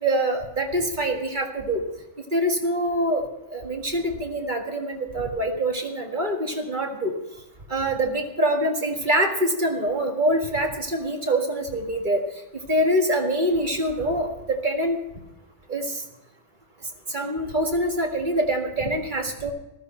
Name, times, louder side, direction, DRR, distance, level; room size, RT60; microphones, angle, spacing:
voice 1, 0.0-1.8 2.3-7.1 7.7-12.3 12.7-15.0 15.7-16.0 17.1-19.5, right 1 dB, 40° right, 2 dB, 1.9 m, -25 dB
14.5 x 13.5 x 4.4 m, 0.92 s
omnidirectional pair, 1.2 m